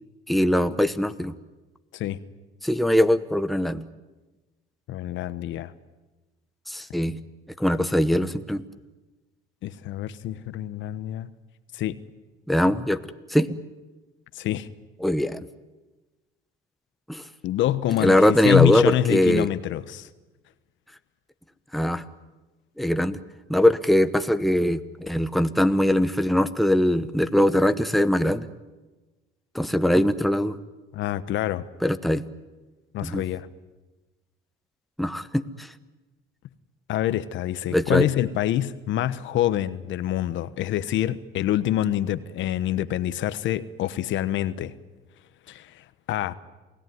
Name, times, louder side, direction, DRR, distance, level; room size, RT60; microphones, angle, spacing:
voice 1, 0.3-1.3 2.6-3.8 6.7-7.2 7.6-8.6 12.5-13.0 13.3-13.6 15.0-15.5 17.1-17.2 18.0-19.5 21.7-22.0 22.8-23.2 23.5-28.5 29.5-30.6 31.8-32.2 33.0-33.2 35.0-35.7 37.7-38.1, left 1 dB, ahead, 10 dB, 1.1 m, -21 dB
voice 2, 4.9-5.7 9.6-11.3 11.7-12.0 14.3-14.7 17.4-18.2 18.4-20.1 30.9-31.6 32.9-33.5 36.9-44.7 45.5-45.8 46.1-46.3, left 12 dB, 65° left, 14 dB, 1.2 m, -26 dB
28.5 x 17.5 x 9.5 m, 1.2 s
cardioid pair, 100°, 21 cm